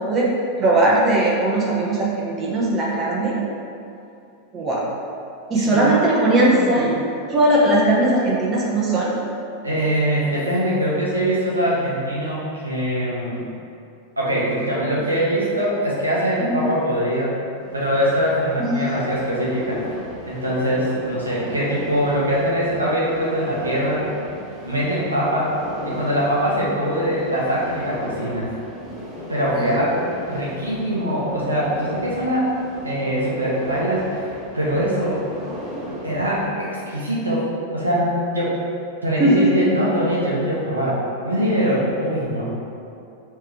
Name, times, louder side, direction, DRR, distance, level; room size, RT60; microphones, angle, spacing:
voice 1, 0.6-3.4 4.5-4.9 5.5-6.9 7.3-9.1 16.5-16.6 18.6-18.8 29.5-29.8 39.2-39.6, right 1 dB, 25° right, -4 dB, 0.8 m, -19 dB
voice 2, 5.6-6.8 9.6-13.4 14.2-17.4 17.7-19.8 20.2-24.1 24.6-28.5 29.3-32.5 32.8-34.3 34.5-35.2 36.0-38.6 39.0-42.4, equal, 80° right, -6 dB, 1.0 m, -23 dB
sound 1, 17.5-36.5, equal, 5° right, 1.5 m, -35 dB
3.4 x 3.2 x 4.8 m, 2.6 s
figure-of-eight pair, 90°, 0 cm